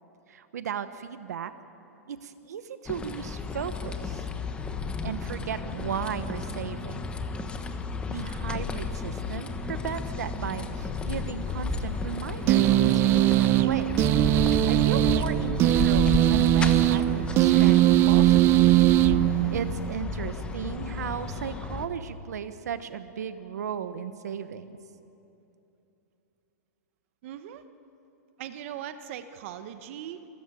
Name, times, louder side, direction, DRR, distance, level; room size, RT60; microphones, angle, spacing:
voice 1, 0.3-1.5 2.1-4.3 5.0-7.0 8.1-14.1 14.7-18.7 19.0-24.8, right 8 dB, 90° right, 11 dB, 1.0 m, -36 dB
sound 1, 2.9-21.9, left 4 dB, 10° left, 1.1 m, -33 dB
sound 2, 12.5-19.9, right 15 dB, 25° right, 0.5 m, -20 dB
voice 2, 27.2-27.6 28.4-30.3, right 10 dB, 50° right, 10 dB, 1.0 m, -39 dB
27.0 x 14.5 x 9.0 m, 2.9 s
hypercardioid pair, 150°, 9 cm